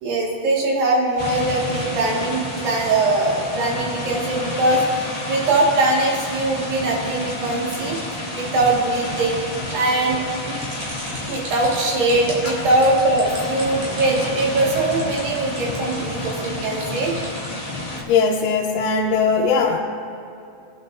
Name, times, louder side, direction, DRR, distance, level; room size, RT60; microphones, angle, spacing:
voice 1, 0.0-4.8 5.3-8.0 8.3-9.4 9.7-10.6 11.3-17.1, right 2 dB, 80° right, -3 dB, 3.8 m, -21 dB
sound 1, 1.2-18.0, left 1 dB, 25° left, 0.8 m, -30 dB
sound 2, 8.6-8.7 9.1-9.2 9.6-9.7 10.1-10.2 10.6-10.7 11.1-11.2 11.6-11.7 12.1-12.2 12.6-12.7 13.1-13.2 13.6-13.7 14.2-14.3 14.7-14.8 15.2-15.3 15.7-15.8 16.2-16.3, left 6 dB, 65° left, 1.5 m, -36 dB
sound 3, 10.6-17.5, right 3 dB, 60° right, 4.0 m, -38 dB
voice 2, 18.1-19.8, left 5 dB, 80° left, -2 dB, 2.3 m, -19 dB
21.0 x 10.0 x 2.7 m, 2.5 s
omnidirectional pair, 4.0 m